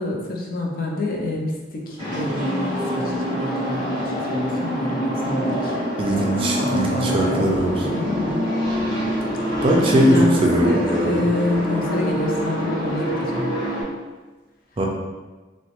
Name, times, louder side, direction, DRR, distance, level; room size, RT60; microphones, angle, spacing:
voice 1, 0.0-5.8 6.6-7.5 7.8-8.5 9.5-9.6 10.1-13.6, left 2 dB, 55° left, -1 dB, 0.5 m, -27 dB
sound 1, 2.0-13.8, equal, 25° left, 1.1 m, -25 dB
voice 2, 6.0-7.7 9.6-11.2 14.8-14.9, right 1 dB, 30° right, -1 dB, 0.4 m, -20 dB
2.9 x 2.1 x 2.9 m, 1.3 s
head